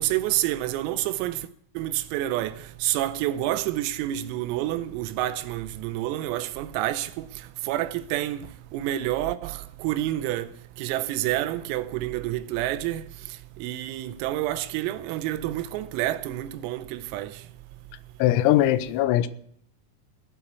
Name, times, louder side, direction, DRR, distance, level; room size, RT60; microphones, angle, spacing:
voice 1, 0.0-1.5 1.8-7.3 7.6-8.5 8.7-10.5 10.8-13.0 13.6-17.4, right 14 dB, 90° right, 3.5 m, -28 dB
voice 2, 18.2-19.3, left 13 dB, 90° left, 3.6 m, -20 dB
18.5 x 7.3 x 8.2 m
omnidirectional pair, 5.9 m